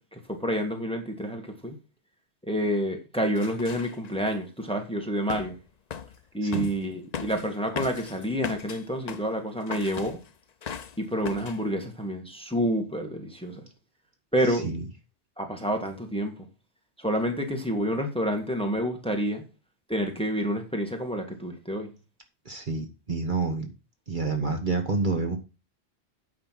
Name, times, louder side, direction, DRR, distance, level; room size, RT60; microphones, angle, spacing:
voice 1, 0.1-1.7 2.5-5.6 6.3-10.2 11.0-13.6 14.3-14.6 15.4-16.3 17.0-19.4 19.9-21.9, equal, 5° left, 1.7 m, -28 dB
sound 1, 3.3-4.3 5.3-5.6 5.9-6.2 6.5-6.8 7.1-9.3 9.7-10.3 10.6-11.0 11.2-11.6, left 7 dB, 45° left, 0.6 m, -38 dB
voice 2, 14.4-14.9 22.4-23.7 24.1-25.4, right 3 dB, 45° right, 1.5 m, -28 dB
9.0 x 5.6 x 5.9 m
omnidirectional pair, 1.2 m